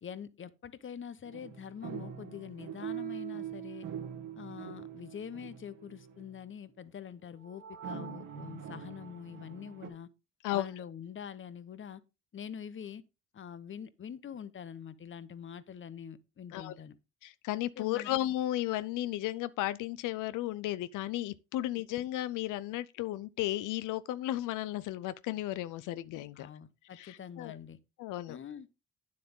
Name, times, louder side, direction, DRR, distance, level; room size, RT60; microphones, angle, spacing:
voice 1, 0.0-3.9 4.4-10.1 10.5-12.0 12.3-13.0 13.3-17.0 17.8-18.1 26.4-27.8 28.3-28.7, left 8 dB, 40° left, 0.9 m, -45 dB
sound 1, 1.2-6.4 7.4-9.9, right 8 dB, 85° right, 2.1 m, -43 dB
voice 2, 17.2-26.5 26.9-27.6 28.0-28.4, left 14 dB, 90° left, 0.5 m, -34 dB
9.4 x 7.5 x 3.7 m
cardioid pair, 90°, 30 cm